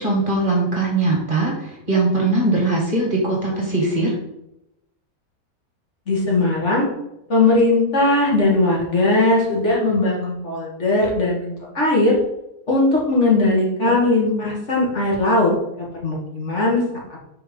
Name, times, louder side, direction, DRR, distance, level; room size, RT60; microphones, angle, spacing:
voice 1, 0.0-4.2 13.8-14.0, right 2 dB, 35° right, -2 dB, 1.5 m, -21 dB
voice 2, 6.1-6.9 7.3-12.2 12.7-15.5 15.8-16.8 17.1-17.2, left 2 dB, 45° left, -3 dB, 1.8 m, -19 dB
5.6 x 4.1 x 5.3 m, 0.86 s
omnidirectional pair, 1.7 m